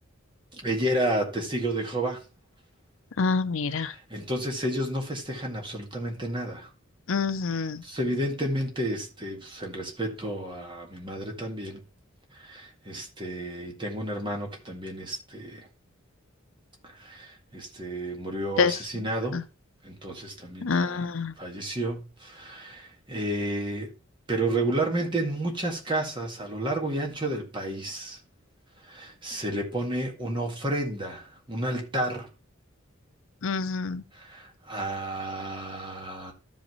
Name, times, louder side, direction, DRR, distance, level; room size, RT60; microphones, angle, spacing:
voice 1, 0.5-2.2 3.7-6.7 7.5-11.8 12.3-15.7 16.8-19.4 19.8-21.1 21.4-23.9 24.3-28.2 28.8-32.3 34.1-36.3, right 1 dB, 25° right, 1.9 m, -31 dB
voice 2, 3.2-3.9 7.1-7.8 18.6-18.8 19.3-19.4 20.6-21.3 33.4-34.0, left 5 dB, 70° left, 0.6 m, -26 dB
14.0 x 5.2 x 3.1 m
head